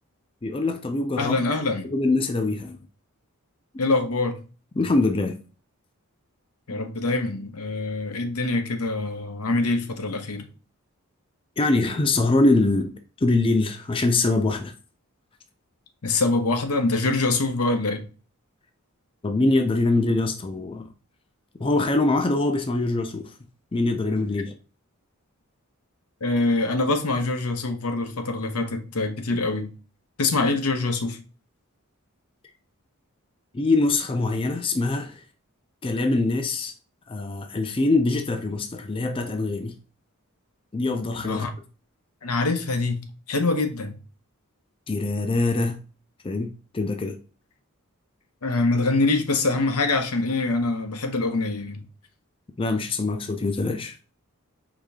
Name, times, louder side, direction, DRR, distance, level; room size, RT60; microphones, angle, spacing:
voice 1, 0.4-1.4 1.9-2.8 4.8-5.3 11.6-14.7 19.2-20.9 21.6-23.3 23.7-24.5 33.5-35.2 35.8-36.7 37.1-39.7 40.7-41.5 44.9-45.8 46.2-46.5 46.7-47.2 52.6-54.0, left 2 dB, 25° left, 0.4 m, -23 dB
voice 2, 1.2-1.9 3.8-4.4 6.7-10.5 16.0-18.0 26.2-29.7 30.2-31.2 41.2-41.5 42.2-43.0 43.3-43.9 48.4-51.8, left 3 dB, 90° left, 0.9 m, -24 dB
5.0 x 2.7 x 3.5 m
head